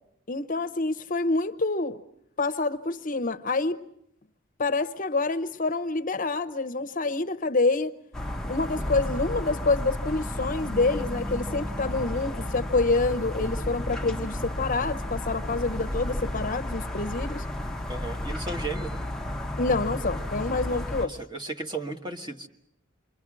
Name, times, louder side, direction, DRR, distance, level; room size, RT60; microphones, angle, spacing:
voice 1, 0.3-2.0 2.4-3.8 4.6-8.0 8.5-17.4 19.6-21.2, left 3 dB, 40° left, 0.9 m, -27 dB
sound 1, 8.1-21.1, left 1 dB, ahead, 0.9 m, -32 dB
voice 2, 17.9-19.0 21.0-22.5, right 3 dB, 20° right, 1.5 m, -35 dB
28.0 x 23.5 x 6.2 m
head